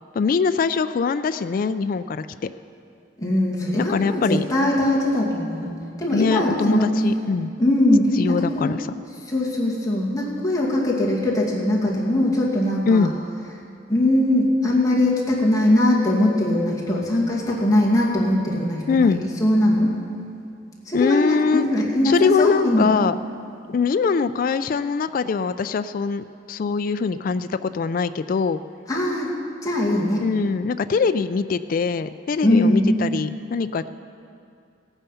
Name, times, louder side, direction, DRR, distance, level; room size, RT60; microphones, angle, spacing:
voice 1, 0.2-2.3 3.9-4.4 6.1-7.5 8.2-8.9 12.9-13.1 18.9-19.2 20.9-21.7 22.0-23.2 23.7-28.6 30.2-33.9, left 5 dB, 50° left, 11 dB, 0.3 m, -22 dB
voice 2, 3.2-5.7 6.0-6.9 7.6-8.7 9.3-13.1 13.9-19.1 19.4-19.9 20.9-22.9 28.9-29.3 29.6-30.2 32.4-32.9, left 1 dB, 20° left, -4 dB, 2.2 m, -21 dB
17.0 x 9.0 x 5.7 m, 2.4 s
head